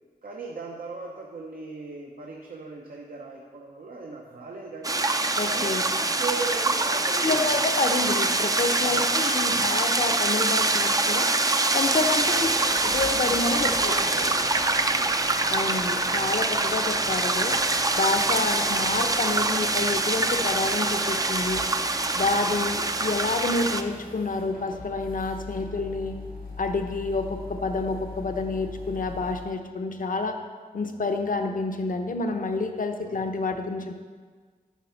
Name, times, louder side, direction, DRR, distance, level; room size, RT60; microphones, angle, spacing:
voice 1, 0.2-5.0 5.5-7.5 8.8-9.7 12.3-12.7 13.8-15.3 33.0-33.2, right 4 dB, 70° right, 0 dB, 0.8 m, -38 dB
sound 1, 4.8-23.8, right 2 dB, 25° right, 0.4 m, -24 dB
voice 2, 5.4-5.8 7.2-11.3 11.7-13.7 15.5-17.6 18.0-21.6 22.1-26.2 26.6-30.4 30.7-33.9, left 3 dB, 60° left, 5 dB, 0.8 m, -28 dB
sound 2, 12.2-29.5, left 2 dB, 90° left, 1.7 m, -42 dB
9.4 x 4.2 x 5.7 m, 1.5 s
wide cardioid pair, 70°, 15 cm